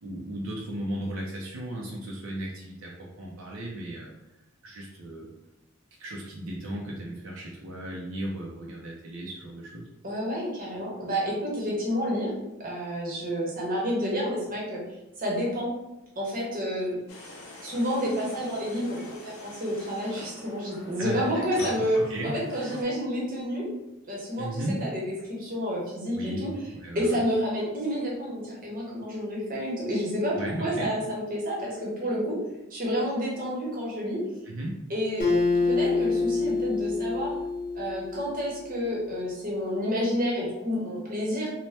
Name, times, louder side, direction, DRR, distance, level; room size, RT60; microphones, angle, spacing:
voice 1, 0.0-4.1 4.6-5.3 6.0-9.9 21.0-22.8 24.4-24.9 26.1-26.5 26.8-27.2 30.3-30.9 34.5-34.9, right 1 dB, 75° right, -3 dB, 0.5 m, -36 dB
voice 2, 10.0-12.3 12.6-14.8 15.2-15.8 16.2-17.0 17.2-17.3 17.6-23.7 24.1-26.5 26.9-32.4 32.7-34.2 34.9-35.3 35.6-37.3 37.7-41.5, equal, 45° right, -3 dB, 0.8 m, -29 dB
sound 1, 17.1-22.8, left 2 dB, 90° left, 0.7 m, -44 dB
Acoustic guitar, 35.2-38.7, left 3 dB, 50° left, 0.8 m, -26 dB
2.7 x 2.1 x 3.2 m, 0.92 s
head